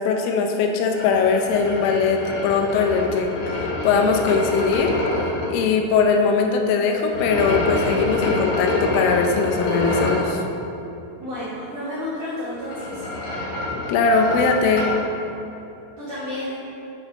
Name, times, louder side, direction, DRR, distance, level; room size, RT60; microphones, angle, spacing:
voice 1, 0.0-4.9 5.5-10.4 13.9-14.9, left 5 dB, 85° left, 3 dB, 3.3 m, -21 dB
sound 1, 0.9-5.5 7.1-10.3 12.4-15.0, left 2 dB, 60° left, 2.0 m, -26 dB
voice 2, 11.2-13.0 16.0-16.6, left 1 dB, 75° right, -10 dB, 1.9 m, -31 dB
9.3 x 3.5 x 5.2 m, 2.9 s
omnidirectional pair, 5.7 m